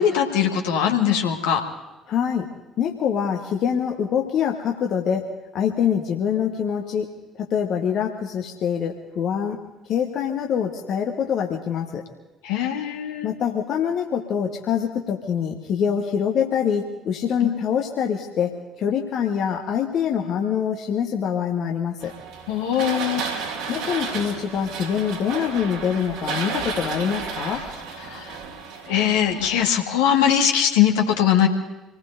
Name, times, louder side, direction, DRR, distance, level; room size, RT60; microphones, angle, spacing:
voice 1, 0.0-1.6 12.4-13.3 17.4-17.6 22.5-23.3 28.0-28.3 28.9-31.5, left 9 dB, 65° left, 2 dB, 1.6 m, -21 dB
voice 2, 2.1-2.5 2.8-5.2 5.5-7.1 7.4-9.6 9.9-12.0 13.2-18.5 18.8-22.1 23.7-27.6, left 8 dB, 50° left, 1 dB, 1.3 m, -24 dB
sound 1, 22.0-29.6, right 5 dB, 65° right, 3.0 m, -32 dB
26.5 x 19.0 x 2.7 m, 1.1 s
figure-of-eight pair, 50°, 0 cm